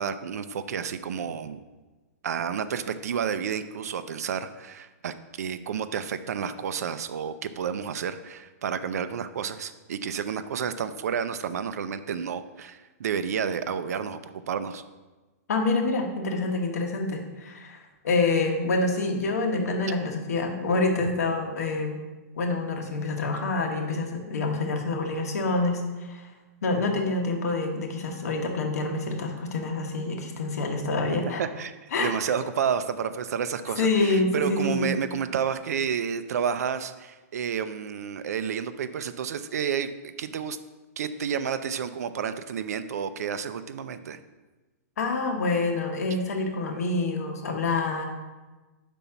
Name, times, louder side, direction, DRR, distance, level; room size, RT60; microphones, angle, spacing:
voice 1, 0.0-1.6 2.2-14.8 31.4-40.6 41.0-44.2, right 7 dB, 75° right, 11 dB, 0.5 m, -30 dB
voice 2, 15.5-22.0 22.4-26.3 26.6-31.4 31.9-32.1 33.8-34.9 45.0-48.0, left 3 dB, 75° left, 3 dB, 1.2 m, -27 dB
5.4 x 4.1 x 5.7 m, 1.2 s
hypercardioid pair, 180°, 8 cm